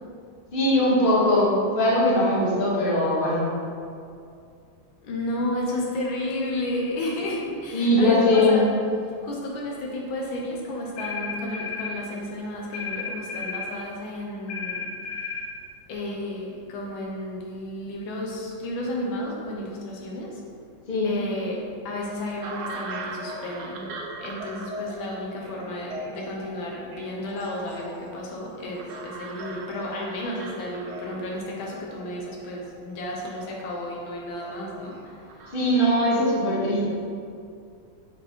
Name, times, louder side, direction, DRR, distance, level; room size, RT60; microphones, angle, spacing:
voice 1, 0.5-3.5 7.7-8.6 20.9-21.1 35.5-36.9, left 1 dB, 30° left, -6 dB, 1.3 m, -21 dB
voice 2, 5.0-8.6 9.2-14.9 15.9-20.4 21.0-23.9 24.2-35.2, left 1 dB, 90° left, -2 dB, 1.7 m, -32 dB
sound 1, 11.0-12.0 12.7-13.7 14.5-15.5, left 5 dB, 65° left, 1.0 m, -33 dB
sound 2, 22.4-35.6, right 2 dB, 70° right, 1.2 m, -40 dB
5.3 x 4.3 x 4.5 m, 2.4 s
omnidirectional pair, 2.1 m